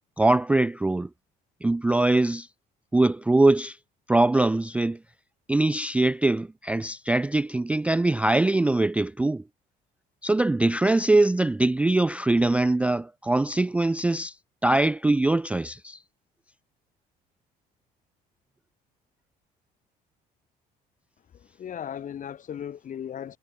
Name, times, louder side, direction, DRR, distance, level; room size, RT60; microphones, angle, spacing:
voice 1, 0.2-1.1 1.6-2.5 2.9-3.8 4.1-5.0 5.5-9.4 10.2-14.3 14.6-16.0, right 2 dB, 10° right, 0.3 m, -22 dB
voice 2, 21.4-23.4, left 9 dB, 50° left, 6.8 m, -36 dB
cardioid pair, 110°, 17 cm